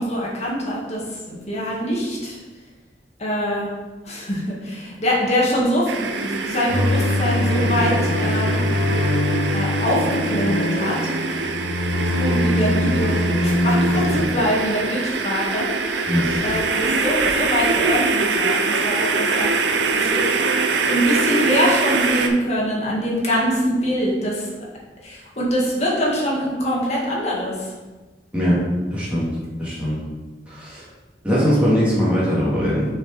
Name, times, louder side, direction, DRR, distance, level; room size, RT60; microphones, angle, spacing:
voice 1, 0.0-2.4 3.2-3.7 4.0-8.6 9.5-11.4 12.1-13.1 13.4-24.5 25.0-27.7, equal, 40° left, -4 dB, 1.9 m, -24 dB
sound 1, 5.9-22.3, right 4 dB, 80° right, 0.7 m, -24 dB
sound 2, 6.7-14.2, left 1 dB, 65° left, 1.7 m, -22 dB
voice 2, 16.1-16.4 28.3-28.6 28.9-29.3 29.6-30.0 30.5-30.8 31.2-32.9, equal, 10° right, -9 dB, 2.2 m, -20 dB
6.3 x 5.0 x 4.4 m, 1.2 s
head